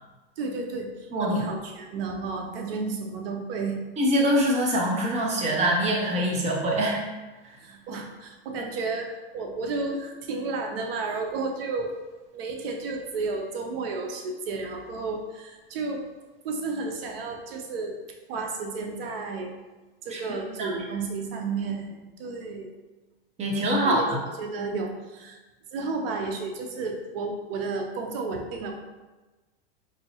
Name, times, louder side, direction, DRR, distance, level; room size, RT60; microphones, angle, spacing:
voice 1, 0.4-3.8 7.6-11.9 12.3-16.1 16.4-18.0 18.3-19.5 20.0-22.7 23.8-24.0 24.4-25.4 25.7-28.7, right 3 dB, 70° right, 3 dB, 0.8 m, -32 dB
voice 2, 1.1-1.4 4.0-7.0 20.1-20.7 23.4-24.0, equal, 20° right, -1 dB, 0.8 m, -24 dB
4.4 x 2.7 x 2.8 m, 1.2 s
supercardioid pair, 135°, 30 cm